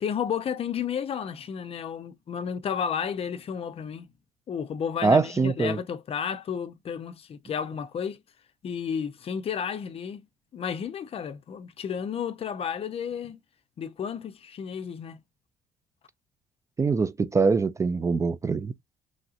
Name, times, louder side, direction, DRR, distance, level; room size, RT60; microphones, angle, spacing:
voice 1, 0.0-4.1 4.5-8.2 8.6-10.2 10.5-13.4 13.8-15.2, left 7 dB, 45° left, 0.5 m, -32 dB
voice 2, 5.0-5.8 16.8-18.7, right 4 dB, 20° right, 0.3 m, -23 dB
3.1 x 2.7 x 2.5 m
cardioid pair, 90°, 14 cm